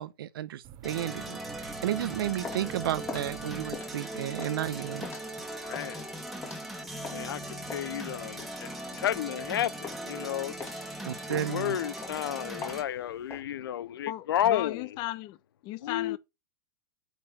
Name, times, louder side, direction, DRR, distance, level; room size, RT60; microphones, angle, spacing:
voice 1, 0.0-5.1 11.0-11.8, right 12 dB, 75° right, 0.9 m, -33 dB
sound 1, 0.6-4.4, right 10 dB, 35° right, 1.1 m, -49 dB
sound 2, 0.8-12.8, right 1 dB, ahead, 1.9 m, -39 dB
sound 3, 2.1-7.3 7.7-9.5 9.8-10.2 10.6-13.4, left 4 dB, 20° left, 2.4 m, -43 dB
voice 2, 5.7-6.1 7.1-10.6 11.3-14.9 15.8-16.2, left 11 dB, 80° left, 0.7 m, -32 dB
voice 3, 14.1-15.4 15.6-16.2, left 15 dB, 35° left, 1.0 m, -36 dB
9.2 x 4.3 x 6.9 m
hypercardioid pair, 140°, 12 cm